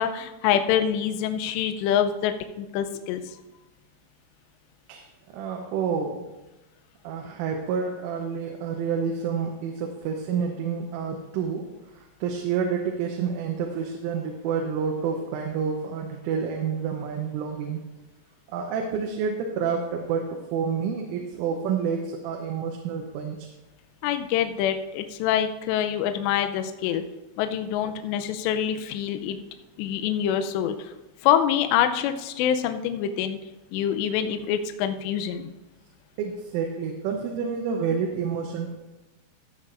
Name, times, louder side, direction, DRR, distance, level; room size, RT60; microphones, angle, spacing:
voice 1, 0.0-3.3 24.0-27.0 27.4-29.4 29.8-30.9 31.2-33.4 33.7-35.5, left 9 dB, 90° left, 8 dB, 2.5 m, -25 dB
voice 2, 5.3-6.3 7.0-11.6 11.9-17.8 18.5-20.2 20.5-23.4 36.2-38.7, right 6 dB, 85° right, 1 dB, 3.4 m, -29 dB
14.5 x 9.6 x 2.5 m, 1.0 s
omnidirectional pair, 5.6 m